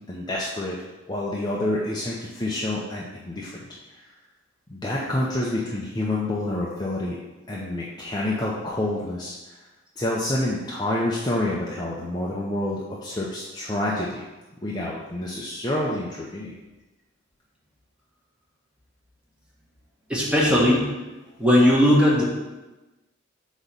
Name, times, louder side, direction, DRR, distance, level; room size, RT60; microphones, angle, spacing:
voice 1, 0.1-0.8 1.1-3.7 4.0-4.1 4.7-7.2 7.5-9.6 10.0-14.2 14.6-16.6, left 1 dB, 20° left, -4 dB, 0.6 m, -28 dB
voice 2, 20.1-20.8 21.4-22.2, equal, 5° right, -5 dB, 1.3 m, -17 dB
8.0 x 3.1 x 5.3 m, 1.1 s
head